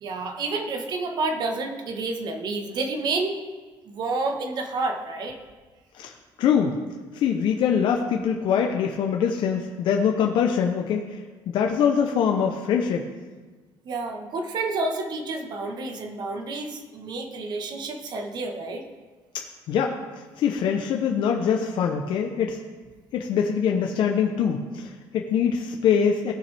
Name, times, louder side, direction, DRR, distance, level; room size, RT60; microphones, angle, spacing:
voice 1, 0.0-3.4 3.9-5.4 13.8-18.8, right 3 dB, 50° right, 5 dB, 1.2 m, -29 dB
voice 2, 5.9-6.8 7.1-13.1 19.3-20.0 20.4-22.6 23.1-26.3, left 7 dB, 60° left, 2 dB, 0.7 m, -24 dB
17.5 x 6.0 x 3.4 m, 1.4 s
cardioid pair, 150°, 10 cm